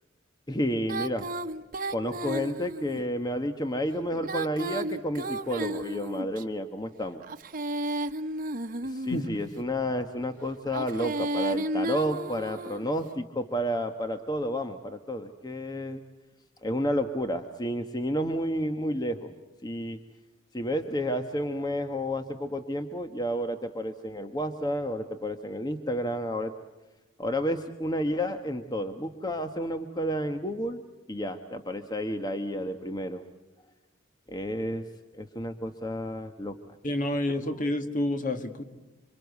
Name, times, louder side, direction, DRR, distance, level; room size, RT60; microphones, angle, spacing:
voice 1, 0.5-1.3 1.9-7.2 8.8-16.0 16.6-19.3 19.6-20.0 20.5-26.5 27.2-30.8 31.1-33.2 34.3-34.8 35.1-36.6, equal, 20° left, 7 dB, 1.1 m, -31 dB
Female singing, 0.9-3.0 4.1-6.4 7.2-9.4 10.6-12.9, right 1 dB, 45° right, 1.2 m, -33 dB
voice 2, 36.8-38.6, left 1 dB, 40° left, 7 dB, 2.1 m, -29 dB
27.0 x 26.0 x 8.3 m, 1.1 s
head